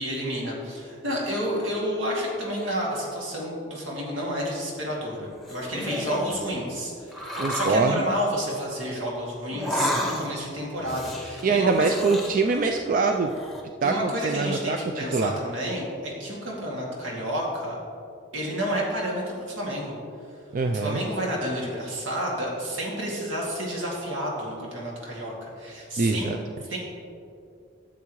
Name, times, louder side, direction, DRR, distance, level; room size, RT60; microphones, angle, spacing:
voice 1, 0.0-11.9 13.8-17.8 18.3-19.9 20.7-26.3 26.7-26.8, equal, 85° right, -3 dB, 2.2 m, -30 dB
sound 1, 5.3-6.5 7.1-7.8 9.5-10.5 10.8-12.7 13.1-13.6, left 1 dB, ahead, 0.8 m, -31 dB
voice 2, 7.4-8.1 11.4-13.3 13.8-15.4 20.5-21.0 26.0-26.4, right 4 dB, 45° right, 4 dB, 0.3 m, -24 dB
12.0 x 7.4 x 3.1 m, 2.5 s
head